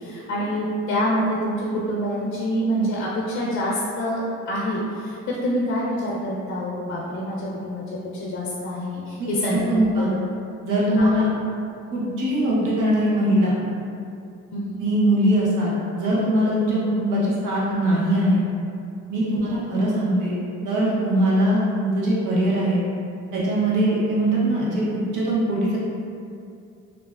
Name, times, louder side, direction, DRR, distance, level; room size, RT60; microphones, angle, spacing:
voice 1, 0.0-7.8 8.1-10.1 11.0-11.1 14.5-14.8 19.4-19.5, equal, 45° left, -4 dB, 0.5 m, -26 dB
voice 2, 9.2-10.1 10.6-11.3 11.9-13.5 14.8-18.4 19.1-20.4 20.6-22.8 23.3-25.8, right 1 dB, 90° right, -6 dB, 0.9 m, -21 dB
3.0 x 2.5 x 2.3 m, 2.5 s
cardioid pair, 90°, 30 cm